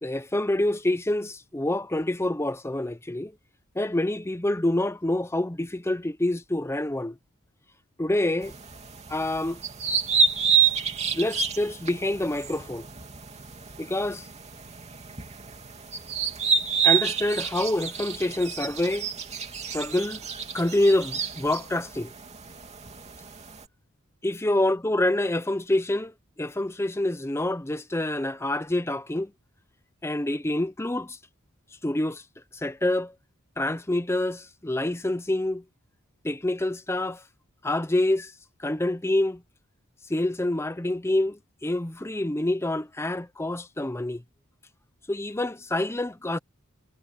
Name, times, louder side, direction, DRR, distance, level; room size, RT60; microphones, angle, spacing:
voice 1, 0.0-3.3 3.8-7.2 8.0-8.5 9.1-9.6 11.1-12.9 13.8-14.3 16.8-19.1 19.7-20.2 20.5-22.1 24.2-29.3 30.0-31.2 31.8-32.2 32.5-33.1 33.6-35.6 36.2-37.2 37.6-38.3 38.6-39.4 40.1-44.2 45.1-46.4, left 1 dB, 10° left, 0.7 m, -27 dB
sound 1, 8.4-23.6, right 6 dB, 30° right, 2.9 m, -29 dB
head